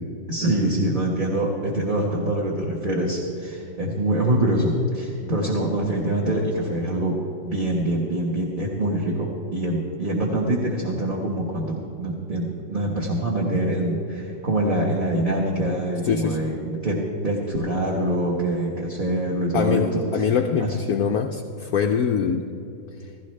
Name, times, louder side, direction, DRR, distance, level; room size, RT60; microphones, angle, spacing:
voice 1, 0.3-7.1 7.4-20.3 20.6-20.8, right 1 dB, 30° right, -4 dB, 1.4 m, -24 dB
voice 2, 16.0-16.4 19.5-22.4, left 7 dB, 70° left, 4 dB, 0.9 m, -23 dB
16.0 x 15.5 x 3.3 m, 2.7 s
omnidirectional pair, 2.0 m